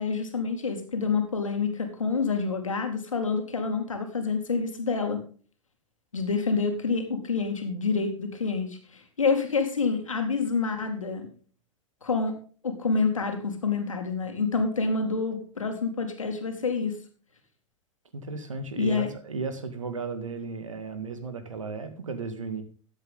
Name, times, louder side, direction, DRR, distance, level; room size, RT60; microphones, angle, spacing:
voice 1, 0.0-5.2 6.1-11.3 12.0-12.3 12.6-17.0 18.8-19.1, left 4 dB, 90° left, 5 dB, 2.4 m, -27 dB
voice 2, 18.1-22.6, right 4 dB, 85° right, 9 dB, 2.0 m, -35 dB
13.5 x 8.1 x 3.7 m, 0.40 s
hypercardioid pair, 95°, 16 cm